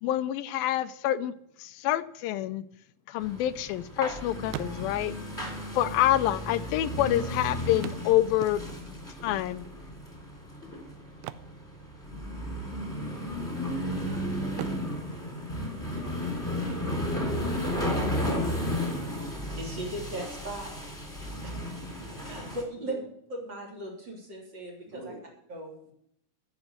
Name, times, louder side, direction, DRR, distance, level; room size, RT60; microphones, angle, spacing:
voice 1, 0.0-1.3 1.6-2.6 3.1-5.2 5.7-8.6 9.2-9.7, left 13 dB, 85° left, 2.4 m, -27 dB
sound 1, 2.8-4.1 4.4-5.3 6.2-6.3 6.5-6.6 7.8-9.0 11.1-12.4 12.6-12.9 13.4-14.0 14.5-16.3 18.2-18.3 18.8-18.9, right 13 dB, 85° right, 1.7 m, -43 dB
sound 2, 3.2-22.6, left 1 dB, 5° left, 3.0 m, -34 dB
voice 2, 18.9-19.4 21.5-22.2 22.8-23.0 24.8-25.2, right 1 dB, 60° right, 5.4 m, -46 dB
voice 3, 19.6-20.7 21.4-21.6 22.2-23.0 23.3-25.1 25.5-25.9, right 1 dB, 30° right, 3.9 m, -38 dB
14.5 x 7.1 x 6.5 m
omnidirectional pair, 4.2 m